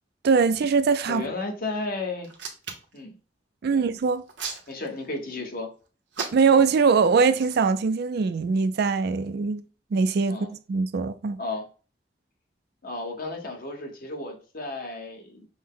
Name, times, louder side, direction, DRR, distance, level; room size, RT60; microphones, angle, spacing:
voice 1, 0.2-1.3 3.6-4.2 6.3-9.6 9.9-11.4, right 5 dB, 60° right, 0.4 m, -22 dB
voice 2, 1.1-2.3 2.9-3.2 3.7-3.8 4.7-5.7 10.3-10.5 11.4-11.6 12.8-15.5, left 2 dB, 55° left, 1.0 m, -33 dB
Hands, 2.2-3.0 4.0-5.2 6.1-6.7 7.3-7.6, right 5 dB, 85° right, 1.0 m, -35 dB
6.1 x 2.1 x 3.7 m
head